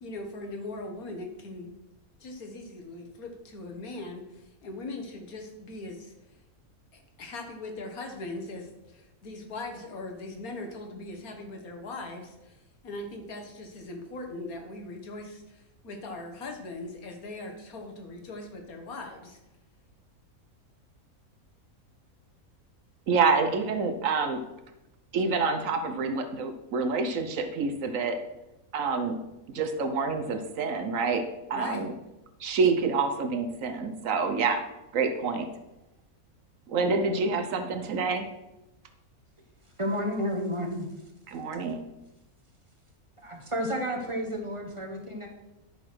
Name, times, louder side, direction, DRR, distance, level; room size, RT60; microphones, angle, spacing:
voice 1, 0.0-1.7 2.2-6.1 6.9-19.4 31.5-32.0, left 2 dB, 75° left, 4 dB, 1.8 m, -40 dB
voice 2, 23.1-24.4 25.1-28.2 28.7-29.2 29.5-31.2 31.5-31.9 32.4-34.7 34.9-35.5 36.7-38.3 41.3-41.8, right 4 dB, 65° right, 8 dB, 1.1 m, -27 dB
voice 3, 39.8-40.9 43.2-45.3, equal, 25° right, 1 dB, 1.1 m, -31 dB
10.5 x 4.1 x 6.0 m, 0.96 s
omnidirectional pair, 1.5 m